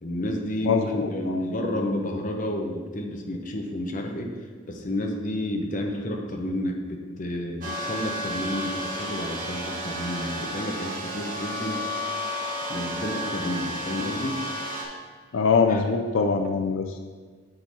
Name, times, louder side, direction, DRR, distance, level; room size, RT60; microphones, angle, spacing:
voice 1, 0.0-4.3 4.7-11.9 12.7-14.4 15.7-15.8, left 1 dB, 40° left, 2 dB, 0.8 m, -30 dB
voice 2, 0.6-1.4 15.3-17.0, left 5 dB, 80° left, 5 dB, 0.4 m, -23 dB
sound 1, 7.6-14.8, equal, 40° right, 1.1 m, -32 dB
8.8 x 3.8 x 4.2 m, 1.5 s
head